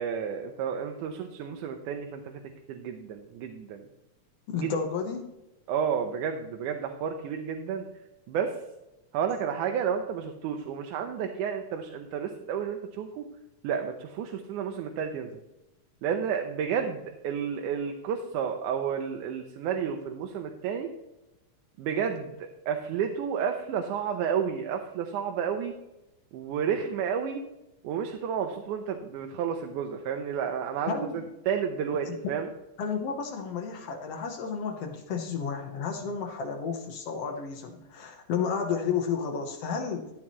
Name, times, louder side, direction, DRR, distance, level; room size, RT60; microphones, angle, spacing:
voice 1, 0.0-2.4 2.7-3.8 4.6-4.7 5.7-7.8 8.3-8.6 9.1-13.3 13.6-15.3 16.0-20.9 21.8-25.7 26.3-27.4 27.8-32.5, right 7 dB, 90° right, 4 dB, 2.2 m, -31 dB
voice 2, 4.5-5.3 30.9-31.2 32.1-32.2 32.8-40.1, left 6 dB, 60° left, 3 dB, 1.9 m, -32 dB
12.0 x 8.6 x 3.0 m, 0.96 s
omnidirectional pair, 3.5 m